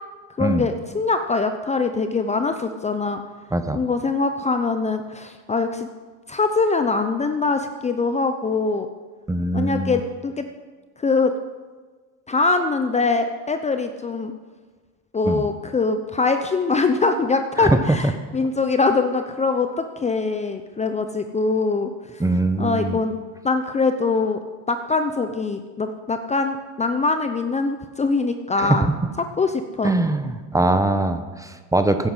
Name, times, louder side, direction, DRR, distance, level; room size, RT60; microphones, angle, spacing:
voice 1, 0.4-3.2 3.7-5.9 6.3-8.9 9.5-10.5 11.0-11.3 12.3-14.3 15.1-22.2 22.6-23.2 23.4-24.4 24.7-28.9 29.4-29.5 29.8-29.9, left 4 dB, 20° left, 7 dB, 0.7 m, -23 dB
voice 2, 3.5-3.8 9.3-10.0 15.2-15.5 17.6-18.1 18.4-18.5 22.2-23.0 28.6-28.9 29.8-32.1, right 2 dB, 10° right, 9 dB, 0.9 m, -22 dB
16.0 x 9.4 x 5.6 m, 1.4 s
supercardioid pair, 110°, 37 cm